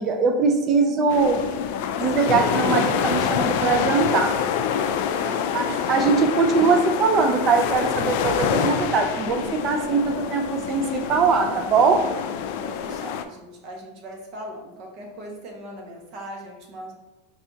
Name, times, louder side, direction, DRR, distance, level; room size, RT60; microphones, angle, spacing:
voice 1, 0.0-1.4 2.0-4.3 5.5-12.0, right 4 dB, 35° right, 5 dB, 0.5 m, -21 dB
sound 1, 1.1-13.2, left 8 dB, 65° left, 0.3 m, -26 dB
voice 2, 5.1-6.4 12.6-16.9, right 1 dB, 55° right, 0 dB, 0.9 m, -39 dB
4.4 x 3.3 x 2.6 m, 1.0 s
supercardioid pair, 125°, 0 cm